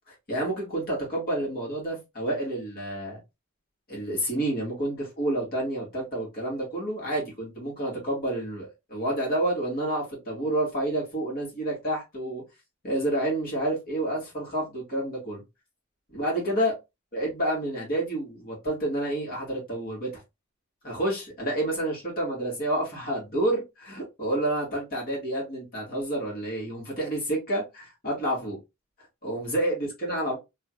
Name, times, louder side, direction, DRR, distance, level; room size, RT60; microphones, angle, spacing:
voice 1, 0.3-3.2 3.9-12.4 12.8-15.4 16.1-16.7 17.1-20.2 20.8-28.6 29.2-30.4, right 1 dB, 45° left, 2.1 m, -29 dB
3.9 x 2.9 x 2.5 m
head